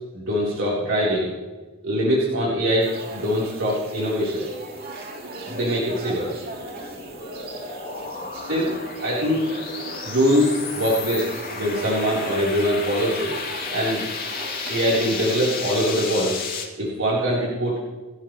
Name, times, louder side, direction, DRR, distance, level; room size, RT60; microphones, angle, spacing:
voice 1, 0.1-1.3 1.8-4.4 5.2-6.3 8.3-13.3 13.7-14.0 14.7-16.3 16.8-17.8, equal, 65° right, -6 dB, 4.1 m, -23 dB
sound 1, 2.8-16.0, right 1 dB, 45° right, 3.2 m, -38 dB
sound 2, 6.4-16.7, left 5 dB, 45° left, 2.9 m, -33 dB
28.0 x 12.5 x 3.2 m, 1.3 s
head